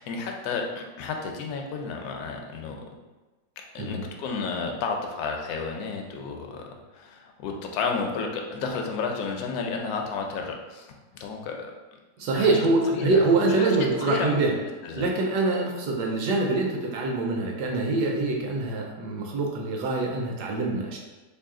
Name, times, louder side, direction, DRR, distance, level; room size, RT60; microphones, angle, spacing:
voice 1, 0.0-2.8 3.7-6.6 6.9-10.9 11.2-11.7 12.4-13.8 14.0-14.6 14.8-15.1, left 4 dB, 75° left, 2 dB, 0.8 m, -32 dB
voice 2, 12.2-14.6 14.9-21.0, right 3 dB, 70° right, 0 dB, 1.1 m, -25 dB
3.1 x 2.7 x 3.6 m, 1.2 s
omnidirectional pair, 2.1 m